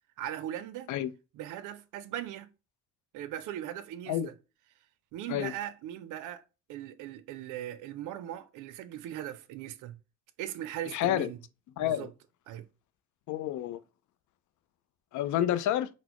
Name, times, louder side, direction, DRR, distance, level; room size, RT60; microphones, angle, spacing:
voice 1, 0.2-0.9 1.3-2.5 3.1-4.3 5.1-6.4 6.7-10.0 10.4-11.4 11.8-12.1 12.5-12.7, right 12 dB, 90° right, 0.4 m, -39 dB
voice 2, 10.9-11.3 11.8-12.1 13.3-13.8 15.1-15.9, left 12 dB, 75° left, 0.4 m, -29 dB
4.0 x 2.0 x 2.9 m
cardioid pair, 90°, 30 cm